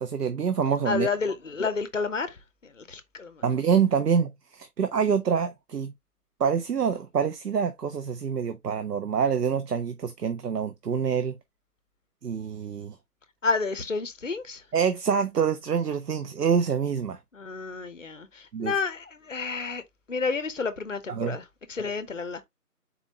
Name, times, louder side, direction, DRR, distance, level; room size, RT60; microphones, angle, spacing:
voice 1, 0.0-1.1 3.4-5.9 6.4-11.4 12.2-13.0 14.7-17.2 18.5-18.7 21.1-21.4, right 7 dB, 80° right, 0.6 m, -26 dB
voice 2, 0.9-3.4 13.4-14.6 17.3-19.8 20.1-21.4 21.7-22.4, left 4 dB, 55° left, 0.6 m, -30 dB
4.1 x 2.9 x 2.6 m
figure-of-eight pair, 170°, 47 cm